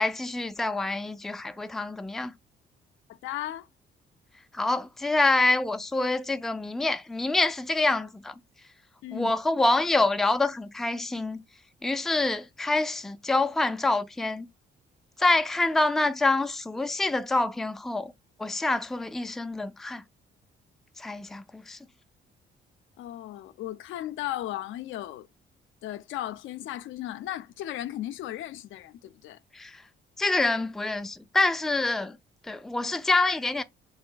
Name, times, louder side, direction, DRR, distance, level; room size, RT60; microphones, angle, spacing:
voice 1, 0.0-2.3 4.5-8.3 9.1-11.4 11.8-14.5 15.2-18.1 18.4-20.0 21.0-21.8 29.5-29.8 30.2-32.2 32.5-33.6, left 2 dB, ahead, 0.3 m, -26 dB
voice 2, 3.2-3.7 9.0-9.3 23.0-25.3 25.8-29.4, left 13 dB, 75° left, 0.4 m, -36 dB
3.0 x 2.6 x 3.7 m
cardioid pair, 90°, 20 cm